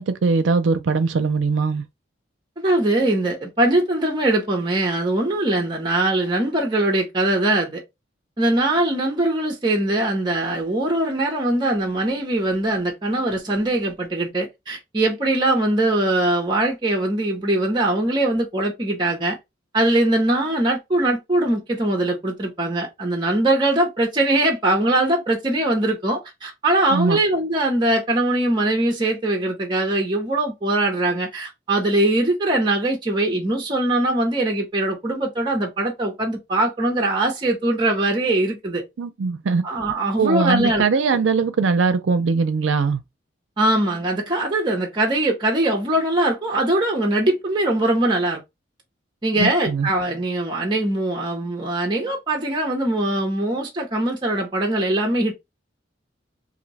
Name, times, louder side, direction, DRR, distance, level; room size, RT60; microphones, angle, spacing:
voice 1, 0.0-1.8 26.9-27.2 39.0-39.6 40.2-43.0 49.4-49.9, right 4 dB, 80° right, 0.5 m, -21 dB
voice 2, 2.6-7.8 8.4-19.4 19.7-38.8 39.6-40.8 41.1-41.2 43.6-48.4 49.2-55.3, right 1 dB, 25° right, 0.6 m, -21 dB
2.6 x 2.1 x 3.9 m
head